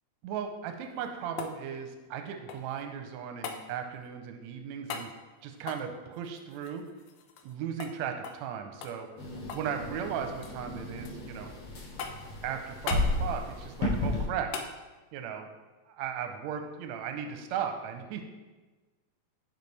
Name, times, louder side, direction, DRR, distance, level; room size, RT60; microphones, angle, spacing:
voice 1, 0.2-5.1 5.4-6.8 7.4-9.1 9.5-11.5 12.4-14.5 15.1-15.5 16.0-18.2, right 8 dB, 80° right, 5 dB, 1.8 m, -36 dB
sound 1, 0.8-2.8 3.4-3.6 4.9-5.1 5.6-7.5 7.8-7.9 8.2-8.5 8.8-9.7 10.0-10.6 11.0-11.6 12.0-12.4 12.9-13.1 14.5-14.7 17.1-17.2, left 6 dB, 85° left, 2.1 m, -40 dB
sound 2, 9.2-14.3, left 2 dB, 55° left, 1.9 m, -33 dB
10.5 x 4.4 x 3.3 m, 1.2 s
omnidirectional pair, 3.5 m